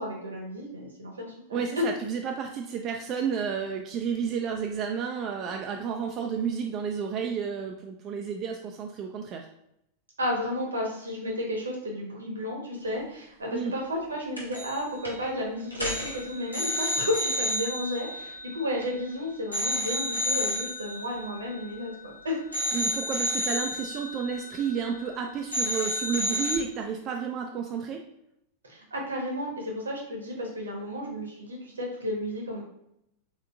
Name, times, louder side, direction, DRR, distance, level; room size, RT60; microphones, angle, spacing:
voice 1, 0.0-1.8 10.2-22.4 28.6-32.6, left 1 dB, 75° right, 0 dB, 1.0 m, -32 dB
voice 2, 1.5-9.5 13.5-13.7 22.7-28.0, right 6 dB, 35° right, 2 dB, 0.3 m, -31 dB
sound 1, 14.4-14.8 15.0-15.3 15.7-19.1 19.5-22.1 22.5-25.2 25.5-26.6, left 1 dB, 85° left, 1.1 m, -31 dB
3.7 x 3.5 x 2.3 m, 0.79 s
figure-of-eight pair, 90°, 0 cm